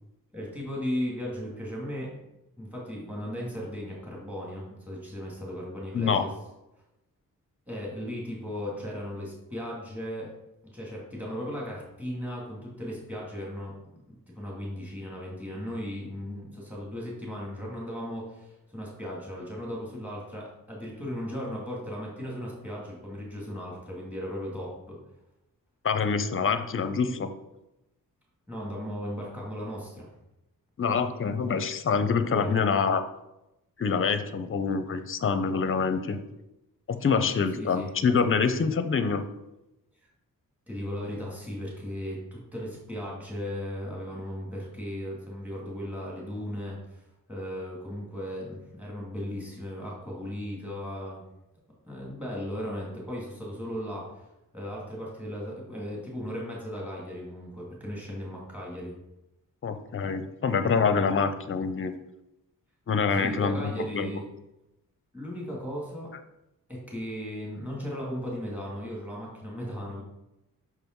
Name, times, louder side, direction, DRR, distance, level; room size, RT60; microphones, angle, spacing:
voice 1, 0.3-2.1 2.6-6.3 7.7-10.3 10.6-13.7 14.1-25.0 28.5-30.1 32.4-32.5 37.5-37.9 40.7-47.0 47.3-51.2 51.8-54.3 54.5-58.9 63.2-64.2 65.1-66.1 66.7-70.0, equal, 5° right, -4 dB, 2.4 m, -36 dB
voice 2, 25.8-27.3 30.8-33.0 33.8-36.2 36.9-39.2 59.6-61.9 62.9-64.1, left 5 dB, 40° left, 10 dB, 0.6 m, -26 dB
5.9 x 5.3 x 4.6 m, 0.91 s
wide cardioid pair, 115°, 34 cm